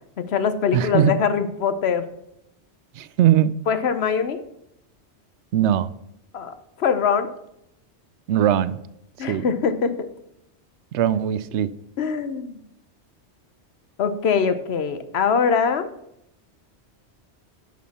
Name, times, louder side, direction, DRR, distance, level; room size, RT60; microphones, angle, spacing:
voice 1, 0.2-2.1 3.7-4.4 6.3-7.3 9.2-9.9 12.0-12.6 14.0-15.9, left 6 dB, 70° left, 11 dB, 1.0 m, -23 dB
voice 2, 0.7-1.1 3.0-3.5 5.5-5.9 8.3-8.8 9.3-9.4 10.9-11.7, right 10 dB, 80° right, 16 dB, 0.9 m, -20 dB
10.5 x 6.3 x 4.2 m, 0.80 s
omnidirectional pair, 1.1 m